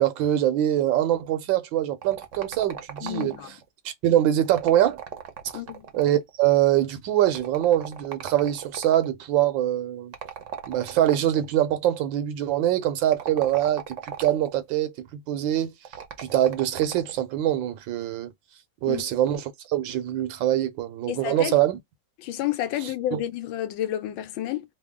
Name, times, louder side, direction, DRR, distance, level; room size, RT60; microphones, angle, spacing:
voice 1, 0.0-3.3 3.8-5.0 5.9-10.1 10.7-15.7 16.2-18.3 18.8-21.8 22.8-23.2, right 12 dB, 80° right, 1.4 m, -24 dB
sound 1, 2.0-3.6 4.5-6.3 7.3-9.1 10.1-11.5 13.0-14.6 15.9-17.2, right 8 dB, 55° right, 0.9 m, -38 dB
voice 2, 3.0-3.6 5.5-5.9 18.9-19.0 21.1-21.6 22.2-24.6, left 12 dB, 85° left, 1.4 m, -30 dB
3.5 x 2.1 x 3.5 m
omnidirectional pair, 2.0 m